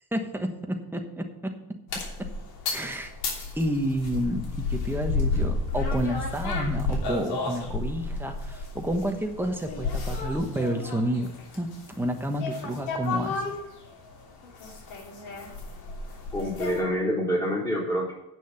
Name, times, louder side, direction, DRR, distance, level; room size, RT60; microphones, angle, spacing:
voice 1, 0.1-1.5 2.2-2.3 2.7-3.1 3.6-11.7 12.0-13.4, equal, 5° right, 4 dB, 1.2 m, -30 dB
sound 1, 1.9-16.8, left 3 dB, 75° left, 3.2 m, -32 dB
voice 2, 16.3-18.1, equal, 10° left, -5 dB, 4.0 m, -27 dB
9.0 x 6.3 x 8.1 m, 0.87 s
cardioid pair, 145°, 37 cm